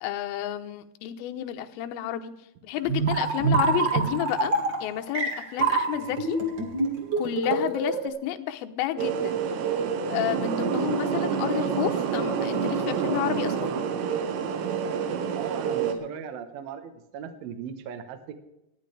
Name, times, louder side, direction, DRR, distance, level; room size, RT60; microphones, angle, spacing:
voice 1, 0.0-2.3 2.6-4.5 4.8-6.4 7.2-9.4 10.1-13.7, left 12 dB, 75° left, 7 dB, 2.4 m, -30 dB
sound 1, 2.8-8.1, right 4 dB, 45° right, 1.5 m, -26 dB
sound 2, 9.0-15.9, right 7 dB, 85° right, 3.4 m, -28 dB
voice 2, 15.3-18.4, right 8 dB, 65° right, 9 dB, 2.7 m, -38 dB
19.0 x 13.5 x 3.4 m, 0.89 s
omnidirectional pair, 5.0 m